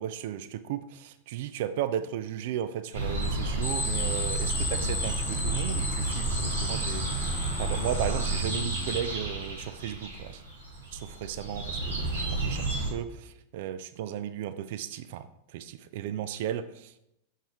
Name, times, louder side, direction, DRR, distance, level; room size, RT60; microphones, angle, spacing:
voice 1, 0.0-10.4 10.9-17.0, right 10 dB, 50° right, 12 dB, 0.3 m, -35 dB
sound 1, 2.9-12.9, right 2 dB, 80° right, 2.7 m, -31 dB
sound 2, 3.6-9.0, left 2 dB, 15° left, 0.8 m, -35 dB
6.6 x 6.3 x 3.0 m, 0.81 s
figure-of-eight pair, 90°, 0 cm